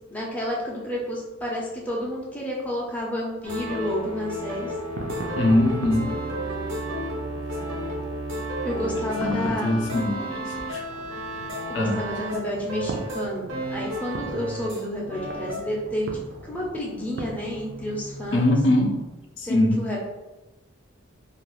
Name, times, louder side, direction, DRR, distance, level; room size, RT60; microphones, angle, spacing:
voice 1, 0.1-4.7 8.6-9.8 11.7-16.1 16.4-18.5 19.4-20.0, equal, 5° left, -4 dB, 0.4 m, -30 dB
sound 1, 3.4-14.8 15.1-15.7, right 1 dB, 85° right, 0.7 m, -32 dB
sound 2, 4.5-19.1, right 2 dB, 55° right, 0.4 m, -40 dB
voice 2, 5.4-6.2 8.8-10.8 11.7-12.0 18.3-19.0 19.4-19.8, left 1 dB, 60° left, 1 dB, 0.4 m, -23 dB
2.4 x 2.2 x 3.0 m, 1.0 s
head